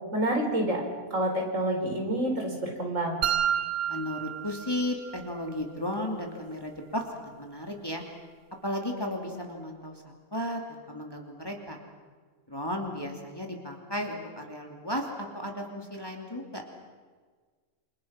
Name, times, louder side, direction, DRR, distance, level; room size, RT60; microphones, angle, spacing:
voice 1, 0.1-0.8 1.1-3.2, right 1 dB, 55° right, 1 dB, 5.0 m, -28 dB
sound 1, 3.2-5.2, right 9 dB, 75° right, 1.4 m, -30 dB
voice 2, 3.9-7.0 7.4-8.0 8.6-10.0 10.3-11.8 12.5-16.6, left 1 dB, 15° left, 1 dB, 2.9 m, -34 dB
28.5 x 27.5 x 6.0 m, 1.5 s
omnidirectional pair, 1.6 m